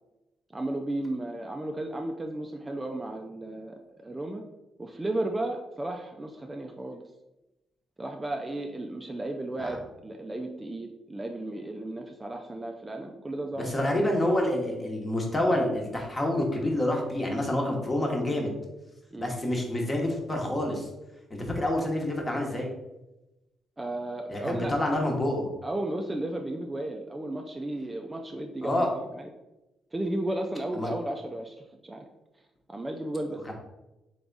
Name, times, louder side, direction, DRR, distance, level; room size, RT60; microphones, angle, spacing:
voice 1, 0.5-4.4 4.8-7.0 8.0-14.0 19.1-19.3 23.8-24.7 25.6-29.3 29.9-31.6 31.8-32.1 32.7-33.5, right 1 dB, 15° right, 3 dB, 0.4 m, -34 dB
voice 2, 13.5-18.5 19.2-20.9 21.3-22.7 24.3-25.5 28.6-28.9 30.7-30.9 33.5-33.6, left 1 dB, 25° left, 1 dB, 1.1 m, -27 dB
3.5 x 3.4 x 3.9 m, 0.98 s
cardioid pair, 90°, 0 cm